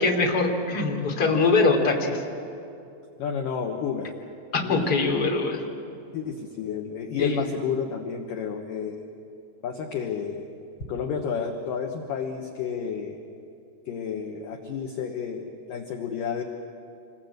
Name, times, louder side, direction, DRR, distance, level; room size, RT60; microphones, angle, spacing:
voice 1, 0.0-2.2 4.5-5.6 7.2-7.4, left 3 dB, 25° left, 0 dB, 2.6 m, -23 dB
voice 2, 3.2-4.1 4.6-4.9 6.1-9.0 9.6-10.4 10.9-13.2 13.9-16.4, left 7 dB, 70° left, 3 dB, 2.2 m, -31 dB
27.5 x 21.5 x 8.0 m, 2.6 s
omnidirectional pair, 5.6 m